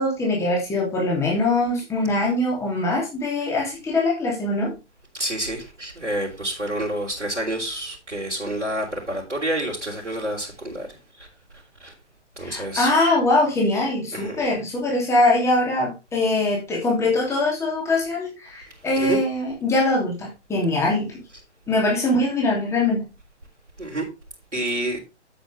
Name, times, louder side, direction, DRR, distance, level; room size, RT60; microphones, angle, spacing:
voice 1, 0.0-4.7 12.4-21.1 21.7-23.1, left 2 dB, 10° left, 2.9 m, -22 dB
voice 2, 5.1-10.9 11.8-11.9 12.4-12.9 14.1-14.5 19.0-19.2 23.8-24.0 24.5-25.0, right 1 dB, 80° right, 3.4 m, -28 dB
9.2 x 7.9 x 3.4 m
figure-of-eight pair, 130°, 35 cm